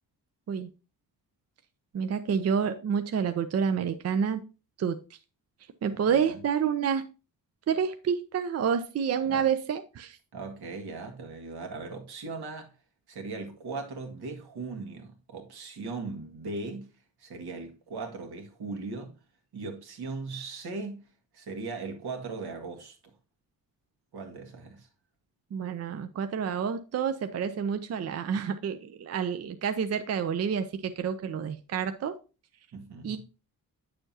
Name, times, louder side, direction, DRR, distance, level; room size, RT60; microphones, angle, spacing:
voice 1, 1.9-4.4 4.8-5.0 5.8-7.1 7.7-10.2 25.5-32.2 33.0-33.2, right 7 dB, 40° right, 0.5 m, -29 dB
voice 2, 5.9-6.4 9.2-9.5 10.3-12.7 13.1-16.9 17.2-19.2 19.5-21.1 21.3-23.1 24.1-24.9 32.7-33.2, right 3 dB, 80° right, 1.8 m, -38 dB
8.8 x 6.9 x 2.7 m
wide cardioid pair, 155°, 38 cm